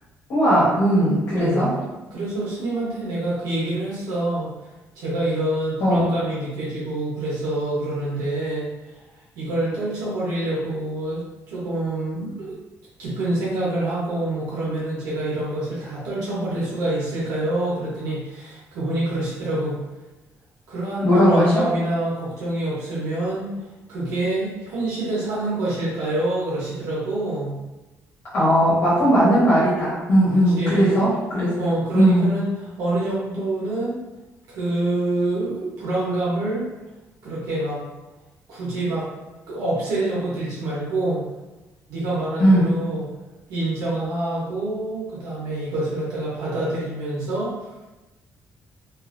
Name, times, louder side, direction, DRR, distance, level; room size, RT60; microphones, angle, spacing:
voice 1, 0.3-1.8 5.8-6.1 21.0-21.6 28.3-31.6 31.9-32.3 42.4-42.8, equal, 55° left, -10 dB, 1.1 m, -18 dB
voice 2, 1.3-1.7 2.1-4.5 4.9-8.6 9.3-11.2 11.5-12.5 13.0-19.8 20.7-23.5 23.9-27.6 30.3-31.0 31.6-32.5 32.8-34.0 34.5-36.7 37.2-37.8 38.5-39.1 39.5-41.3 41.9-43.0 43.5-47.5, right 1 dB, 85° right, -7 dB, 1.0 m, -26 dB
2.7 x 2.6 x 2.5 m, 1.1 s
cardioid pair, 180°, 6 cm